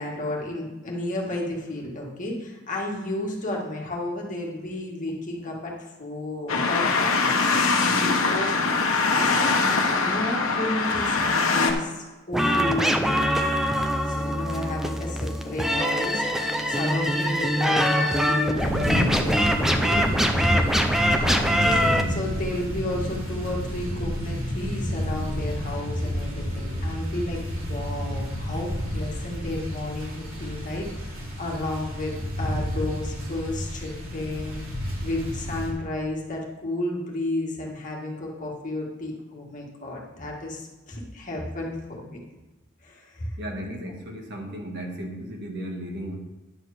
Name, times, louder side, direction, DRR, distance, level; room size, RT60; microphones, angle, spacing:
voice 1, 0.0-7.6 7.9-13.3 14.0-16.3 16.7-20.8 21.1-42.2 42.8-43.6, left 1 dB, 40° left, -2 dB, 1.8 m, -32 dB
sound 1, 6.5-11.7, left 4 dB, 80° left, 1.2 m, -22 dB
sound 2, 12.3-22.0, equal, ahead, 0.6 m, -23 dB
sound 3, 18.6-35.7, equal, 85° right, 2.9 m, -30 dB
voice 2, 43.4-46.2, equal, 55° right, 1 dB, 1.8 m, -35 dB
10.5 x 4.7 x 6.7 m, 1.1 s
head